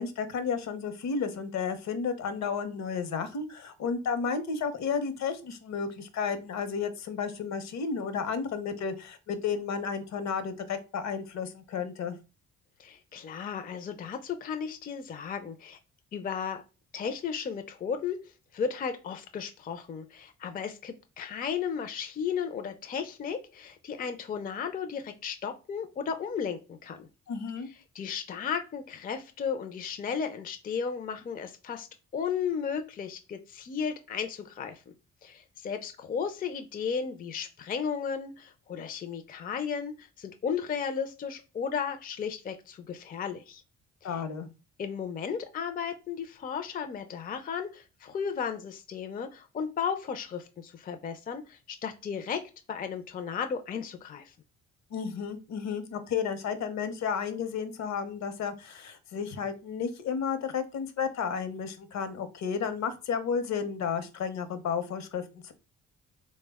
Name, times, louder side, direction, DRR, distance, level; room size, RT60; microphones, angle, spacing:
voice 1, 0.0-12.2 27.3-27.7 44.0-44.5 54.9-65.5, left 6 dB, 65° left, 10 dB, 0.7 m, -32 dB
voice 2, 12.8-15.8 16.1-16.6 16.9-18.2 18.5-27.1 27.9-31.9 32.1-34.8 35.2-43.6 44.1-44.2 44.8-52.4 52.7-54.3, left 7 dB, 30° left, 7 dB, 0.4 m, -34 dB
3.3 x 2.1 x 3.4 m, 0.31 s
cardioid pair, 90°, 30 cm